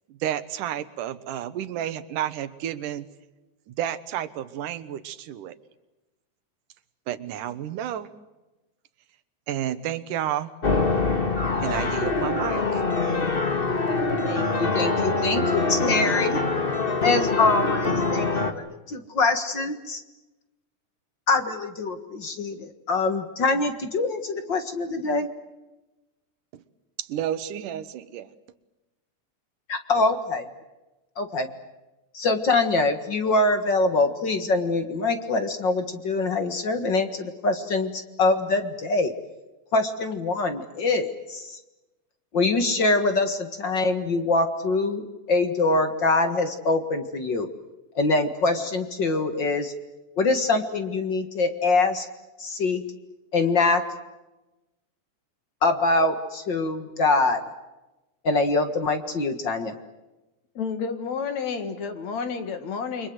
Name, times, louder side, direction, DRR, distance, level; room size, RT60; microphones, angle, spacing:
voice 1, 0.1-3.1 3.7-5.6 7.1-8.1 9.5-10.5 11.6-12.8 26.5-26.6 27.0-28.3, right 11 dB, 85° right, 13 dB, 2.8 m, -31 dB
sound 1, 10.6-18.5, left 3 dB, 25° left, 1.2 m, -24 dB
voice 2, 14.2-16.4 17.0-18.3 18.6-20.0 21.3-25.3 29.7-30.5 31.2-31.5 32.1-39.1 39.7-41.6 42.3-47.5 48.0-49.7 50.2-52.1 52.4-52.8 53.3-53.8 55.6-57.4 58.2-59.7, left 3 dB, 45° left, 8 dB, 1.9 m, -24 dB
voice 3, 60.5-63.1, left 5 dB, 60° left, 8 dB, 3.3 m, -30 dB
29.5 x 24.0 x 8.0 m, 1.0 s
omnidirectional pair, 3.6 m